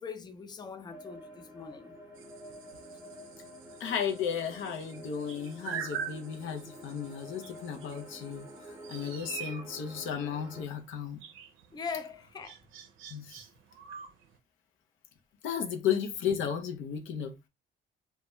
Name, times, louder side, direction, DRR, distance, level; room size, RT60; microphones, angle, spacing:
voice 1, 0.0-1.9 11.7-12.6, left 5 dB, 20° left, 0.4 m, -41 dB
sound 1, 0.9-10.7, equal, 10° right, 0.8 m, -49 dB
sound 2, 2.2-14.4, right 8 dB, 85° right, 0.5 m, -45 dB
voice 2, 3.8-8.5 8.9-11.2 13.1-13.4 15.4-17.5, left 8 dB, 80° left, 0.5 m, -34 dB
2.2 x 2.1 x 2.9 m
cardioid pair, 90°, 20 cm